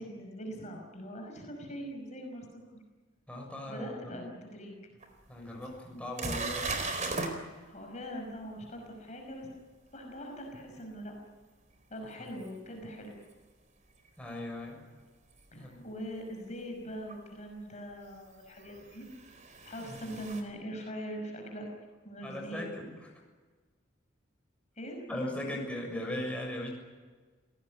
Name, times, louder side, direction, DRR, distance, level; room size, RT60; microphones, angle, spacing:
voice 1, 0.0-2.6 3.7-4.8 7.7-9.5 9.9-11.1 11.9-13.2 15.5-19.1 19.6-21.7 22.0-22.6 24.8-25.0, equal, 35° left, 2 dB, 5.6 m, -42 dB
voice 2, 3.3-4.3 5.3-7.2 12.2-12.3 14.2-14.8 15.6-15.8 19.8-20.0 22.2-22.9 25.1-26.7, left 1 dB, 5° left, 0 dB, 6.8 m, -38 dB
sound 1, 5.0-5.1 5.6-5.7 6.2-7.3 12.5-12.6 15.3-15.4 17.1-17.2 18.6-20.4, right 3 dB, 40° right, 4.2 m, -36 dB
28.0 x 18.0 x 9.6 m, 1.4 s
head